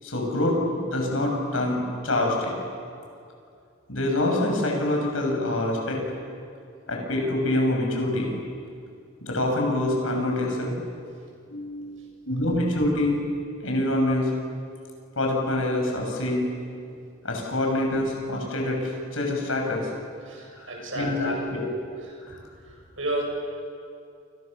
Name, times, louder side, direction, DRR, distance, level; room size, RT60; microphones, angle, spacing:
voice 1, 0.0-2.6 3.9-6.0 6.9-8.3 9.2-10.8 11.5-13.2 13.6-14.3 15.2-16.4 17.2-19.9 20.6-20.7 20.9-21.7 22.3-22.4, left 1 dB, 80° left, 0 dB, 7.4 m, -26 dB
voice 2, 20.2-21.4 23.0-23.2, right 1 dB, 75° right, 0 dB, 7.8 m, -31 dB
30.0 x 26.5 x 6.9 m, 2.4 s
head